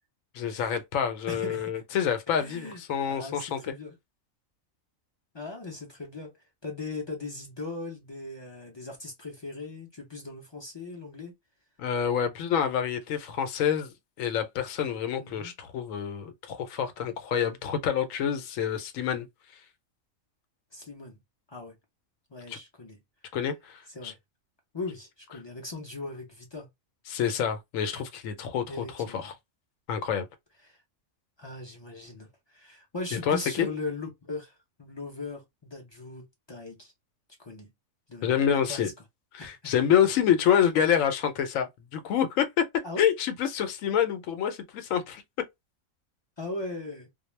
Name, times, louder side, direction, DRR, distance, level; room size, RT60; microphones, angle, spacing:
voice 1, 0.3-3.6 11.8-19.3 22.5-22.6 23.3-24.1 27.1-29.3 29.9-30.3 33.3-33.7 38.2-38.9 39.3-42.6 43.0-45.2, left 8 dB, 80° left, 1.0 m, -27 dB
voice 2, 1.3-1.8 2.4-2.8 3.1-4.0 5.3-11.3 15.2-15.5 20.7-21.2 21.5-21.8 22.3-23.0 23.9-24.2 24.7-26.7 28.7-29.3 30.6-30.8 31.4-36.9 37.4-37.7 38.1-38.9 39.4-39.7 42.8-43.1 46.4-47.1, left 2 dB, 40° left, 0.3 m, -39 dB
2.3 x 2.0 x 3.0 m
omnidirectional pair, 1.4 m